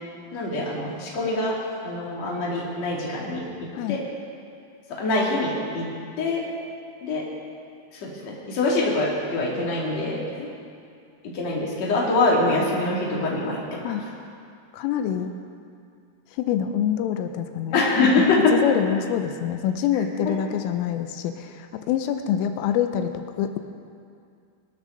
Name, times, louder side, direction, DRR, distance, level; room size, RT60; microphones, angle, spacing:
voice 1, 0.3-1.5 1.8-3.4 3.9-4.0 5.0-5.9 6.2-6.4 7.0-7.2 8.0-10.5 11.3-13.9 17.7-18.5 20.3-20.4, left 3 dB, 40° left, -4 dB, 3.2 m, -24 dB
voice 2, 14.7-15.3 16.3-17.8 18.2-23.6, left 9 dB, 90° left, 7 dB, 3.3 m, -26 dB
24.5 x 12.5 x 4.0 m, 2.4 s
omnidirectional pair, 5.8 m